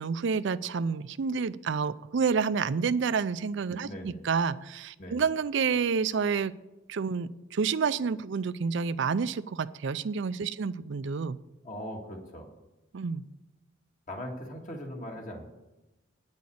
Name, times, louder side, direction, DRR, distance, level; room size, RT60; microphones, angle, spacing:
voice 1, 0.0-6.5 6.9-11.4 12.9-13.2, right 5 dB, 60° right, 16 dB, 0.4 m, -29 dB
voice 2, 3.8-4.2 5.0-5.2 10.5-10.6 11.6-12.5 14.1-15.5, equal, 40° left, 2 dB, 1.8 m, -40 dB
9.6 x 6.3 x 8.4 m, 1.0 s
head